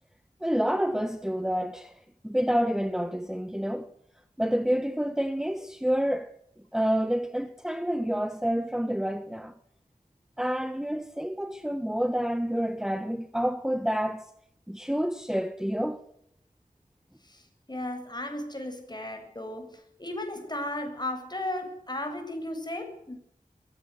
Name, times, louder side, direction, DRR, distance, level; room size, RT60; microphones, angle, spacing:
voice 1, 0.4-3.9 4.4-6.3 6.7-9.5 10.4-14.3 14.7-16.0, equal, 5° right, 1.4 m, -28 dB
voice 2, 17.2-23.2, left 1 dB, 30° left, 7.9 m, -35 dB
23.0 x 17.0 x 8.3 m
wide cardioid pair, 55°, 15 cm